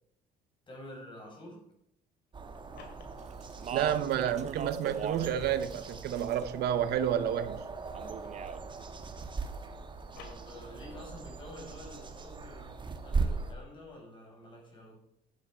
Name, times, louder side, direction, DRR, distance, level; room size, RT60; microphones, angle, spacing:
voice 1, 0.7-1.7 10.1-15.0, left 1 dB, 30° left, 5.2 m, -49 dB
sound 1, 2.3-4.4 5.0-8.8 9.0-11.0, left 6 dB, 85° left, 2.6 m, -58 dB
sound 2, 2.3-13.5, right 4 dB, 30° right, 1.3 m, -39 dB
Speech, 3.4-5.4 5.6-6.5 7.9-8.6, right 7 dB, 45° right, 0.7 m, -39 dB
voice 2, 3.7-7.7, right 9 dB, 75° right, 0.9 m, -30 dB
11.5 x 8.5 x 4.5 m
cardioid pair, 110°, 17 cm